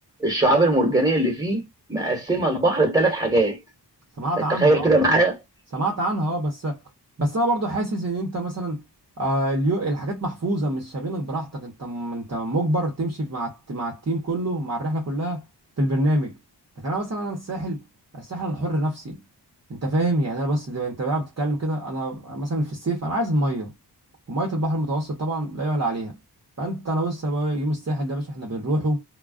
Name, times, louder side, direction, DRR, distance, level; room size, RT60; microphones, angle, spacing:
voice 1, 0.2-3.6 4.4-5.4, right 2 dB, 10° right, 1.3 m, -20 dB
voice 2, 4.2-4.9 5.7-6.8 7.2-8.8 9.2-15.4 15.8-16.4 16.8-17.8 18.1-19.2 19.7-23.7 24.3-26.2 26.6-29.0, right 1 dB, 40° right, 0.9 m, -26 dB
2.3 x 2.3 x 2.3 m
wide cardioid pair, 80°, 41 cm